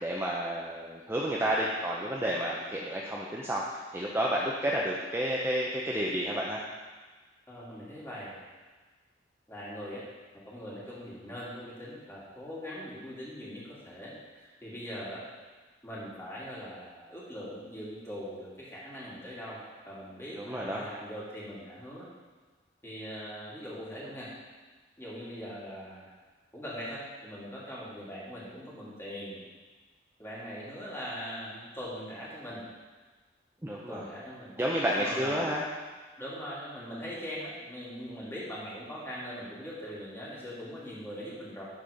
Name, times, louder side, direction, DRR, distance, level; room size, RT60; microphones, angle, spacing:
voice 1, 0.0-6.6 20.4-20.8 33.6-34.0 34.6-35.6, equal, 15° right, -4 dB, 0.7 m, -31 dB
voice 2, 7.5-8.4 9.5-10.0 10.3-15.2 15.8-22.1 22.8-24.3 25.0-26.1 26.5-29.4 30.2-32.7 33.9-34.5 35.0-35.4 36.2-41.6, equal, 15° left, -8 dB, 2.6 m, -41 dB
11.5 x 4.4 x 5.0 m, 1.4 s
head